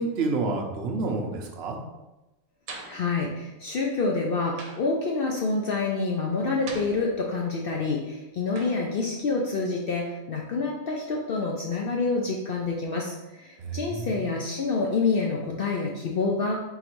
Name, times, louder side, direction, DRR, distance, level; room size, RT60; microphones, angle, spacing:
voice 1, 0.0-1.8 13.6-14.1, right 3 dB, 60° right, 2 dB, 0.8 m, -29 dB
sound 1, 2.7-3.1 4.6-5.0 6.7-7.4 8.5-8.9, right 3 dB, 75° right, 1.1 m, -42 dB
voice 2, 2.9-16.6, left 3 dB, 65° left, -1 dB, 0.5 m, -27 dB
3.9 x 2.6 x 4.4 m, 1.0 s
omnidirectional pair, 1.5 m